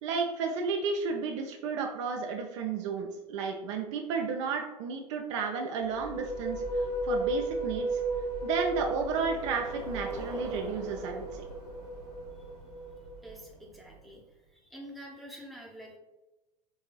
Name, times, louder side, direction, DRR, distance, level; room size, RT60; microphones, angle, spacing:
voice 1, 0.0-8.0 8.4-11.4, right 5 dB, 50° right, 3 dB, 0.5 m, -33 dB
sound 1, 5.8-13.4, right 1 dB, 70° left, 0.8 m, -35 dB
Bicycle, 7.8-14.3, right 2 dB, 70° right, 1.2 m, -46 dB
voice 2, 13.2-14.2 14.5-16.0, equal, ahead, -1 dB, 0.7 m, -47 dB
4.0 x 3.6 x 2.3 m, 1.0 s
figure-of-eight pair, 80°, 20 cm